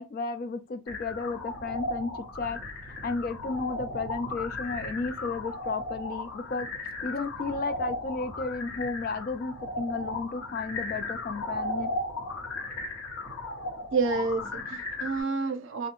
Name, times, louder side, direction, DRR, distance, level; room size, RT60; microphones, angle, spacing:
voice 1, 0.0-2.6 2.9-6.7 7.0-11.9, left 4 dB, 45° left, 0.3 m, -33 dB
sound 1, 0.9-15.2, left 2 dB, 85° left, 1.0 m, -36 dB
voice 2, 13.9-15.9, right 4 dB, 65° right, 0.5 m, -29 dB
2.3 x 2.1 x 2.9 m
head